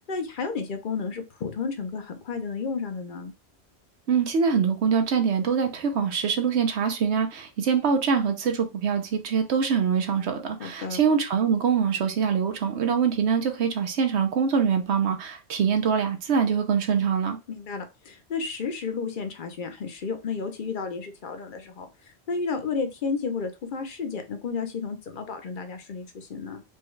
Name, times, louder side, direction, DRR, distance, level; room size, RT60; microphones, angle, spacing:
voice 1, 0.0-3.3 10.6-11.0 17.5-21.9 22.3-26.6, left 5 dB, 50° left, 0.8 m, -32 dB
voice 2, 4.1-17.4, right 6 dB, 80° right, 1.0 m, -24 dB
4.6 x 2.3 x 3.1 m
omnidirectional pair, 1.1 m